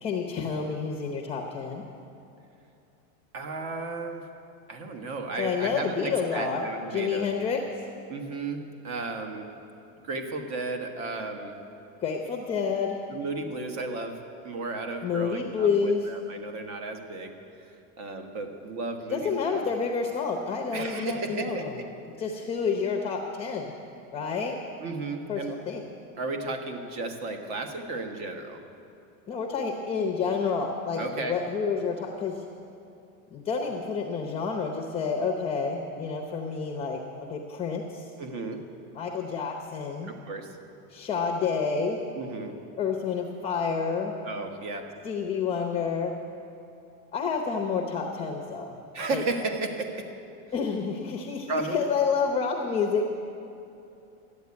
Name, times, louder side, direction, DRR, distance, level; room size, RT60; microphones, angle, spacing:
voice 1, 0.0-1.8 5.4-7.6 12.0-13.0 15.0-16.1 19.1-21.7 22.2-23.7 24.1-24.6 25.3-25.8 29.3-32.4 33.3-37.0 37.3-38.1 38.9-40.1 40.9-42.0 42.8-44.1 45.0-46.1 47.1-48.7 49.1-49.2 50.5-53.1, left 5 dB, 15° left, 2 dB, 0.8 m, -29 dB
voice 2, 3.3-4.3 4.7-7.3 8.1-9.4 10.0-11.6 13.1-14.2 14.4-17.3 18.0-19.6 20.7-21.8 24.8-25.6 26.2-28.6 30.9-31.4 38.2-38.6 40.0-40.6 42.1-42.6 44.2-44.9 48.9-50.1 51.5-51.9, right 3 dB, 40° right, 5 dB, 1.5 m, -34 dB
12.5 x 8.8 x 9.6 m, 2.8 s
supercardioid pair, 155°, 41 cm